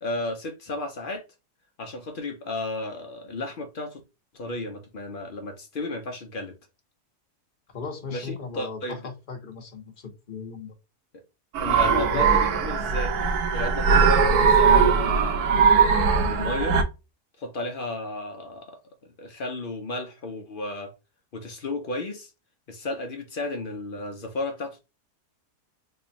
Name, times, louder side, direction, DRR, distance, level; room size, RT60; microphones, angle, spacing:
voice 1, 0.0-1.2 1.8-4.0 4.3-6.6 8.1-9.0 11.1-11.2 11.6-13.2 13.5-15.0 16.2-16.8 17.4-18.8 19.2-20.9 21.3-22.3 22.7-24.8, left 2 dB, 60° left, 0.5 m, -33 dB
voice 2, 7.7-10.7 11.7-12.2, left 5 dB, 40° left, 0.9 m, -37 dB
sound 1, 11.6-16.8, right 5 dB, 75° right, 1.2 m, -20 dB
3.3 x 2.3 x 4.0 m
omnidirectional pair, 1.7 m